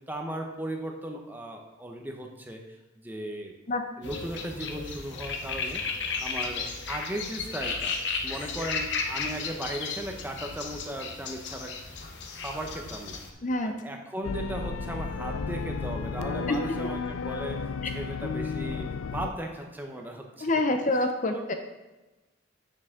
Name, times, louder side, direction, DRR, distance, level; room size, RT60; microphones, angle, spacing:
voice 1, 0.1-3.5 4.0-5.8 6.2-7.9 8.2-11.8 12.3-13.2 13.6-20.5 20.9-21.5, right 1 dB, 10° right, 2 dB, 0.8 m, -37 dB
sound 1, 4.0-13.3, left 4 dB, 60° left, 0.9 m, -34 dB
voice 2, 13.4-13.8 16.5-16.6 20.4-21.5, left 2 dB, 40° left, 6 dB, 0.6 m, -26 dB
sound 2, 14.2-19.3, left 4 dB, 90° left, 0.4 m, -33 dB
9.0 x 6.6 x 3.7 m, 1.1 s
head